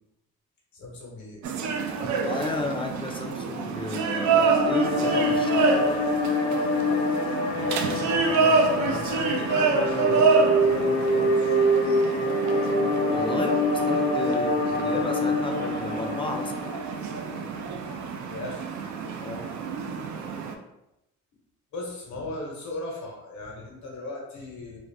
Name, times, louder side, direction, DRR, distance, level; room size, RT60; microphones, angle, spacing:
voice 1, 0.7-1.4 2.0-2.1 8.3-11.8 18.3-18.6 21.7-24.8, left 2 dB, 70° left, -1 dB, 1.0 m, -37 dB
sound 1, 1.4-20.5, right 5 dB, 70° right, 0.4 m, -27 dB
voice 2, 2.3-5.7 12.9-16.5 19.2-19.5, left 3 dB, 20° left, 3 dB, 0.4 m, -33 dB
sound 2, 3.9-17.2, left 1 dB, 90° left, 0.6 m, -25 dB
2.5 x 2.0 x 3.3 m, 0.90 s
cardioid pair, 90°, 30 cm